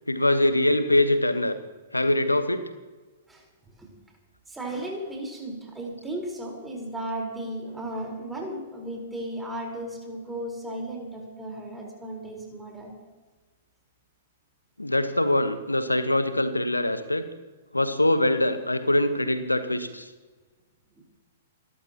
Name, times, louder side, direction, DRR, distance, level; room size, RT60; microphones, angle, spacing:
voice 1, 0.1-1.5 1.9-2.6 14.8-17.2 17.7-20.1, left 1 dB, 85° left, 10 dB, 1.3 m, -23 dB
voice 2, 4.5-13.0, right 1 dB, 10° right, 0 dB, 4.4 m, -35 dB
29.5 x 13.0 x 3.0 m, 1.3 s
figure-of-eight pair, 110°, 0 cm